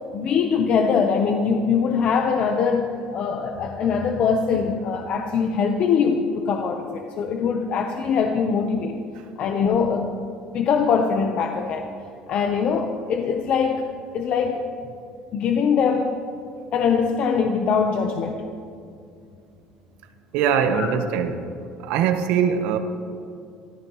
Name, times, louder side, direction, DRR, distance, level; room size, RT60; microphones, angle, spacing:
voice 1, 0.1-8.9 9.4-11.9 12.3-13.8 14.1-14.6 15.3-16.2 16.7-18.4 20.7-20.9, left 6 dB, 55° left, 4 dB, 1.0 m, -22 dB
voice 2, 20.3-21.4 21.8-22.8, right 7 dB, 75° right, 7 dB, 1.3 m, -21 dB
24.0 x 14.5 x 3.2 m, 2.4 s
supercardioid pair, 105°, 2 cm